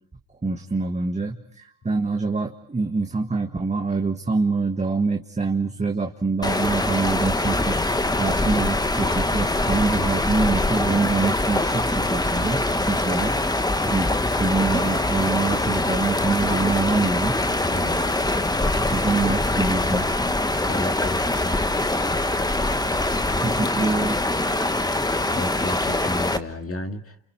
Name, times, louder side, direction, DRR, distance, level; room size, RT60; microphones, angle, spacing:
voice 1, 0.4-7.8 8.1-13.4 13.7-14.1 14.4-17.3 18.6-20.1 23.4-24.2, right 3 dB, 15° right, 3 dB, 1.8 m, -25 dB
sound 1, 6.4-26.4, left 2 dB, 10° left, 1.3 m, -23 dB
voice 2, 17.7-18.1 20.7-21.6 25.3-27.3, left 2 dB, 30° left, 6 dB, 2.2 m, -32 dB
29.5 x 29.0 x 4.7 m, 0.69 s
supercardioid pair, 85°, 45 cm